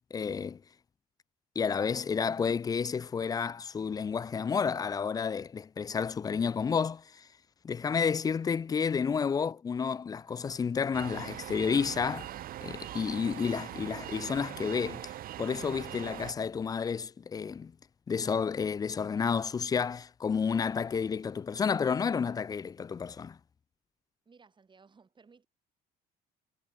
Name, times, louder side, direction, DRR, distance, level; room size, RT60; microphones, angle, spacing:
voice 1, 0.1-0.6 1.6-7.2 7.6-12.3 12.6-15.1 15.4-17.7 18.1-23.4, left 6 dB, 20° left, 0.3 m, -31 dB
sound 1, 10.9-16.3, right 13 dB, 60° right, 0.8 m, -42 dB
voice 2, 24.3-25.5, right 5 dB, 30° right, 6.9 m, -59 dB
cardioid pair, 110°, 17 cm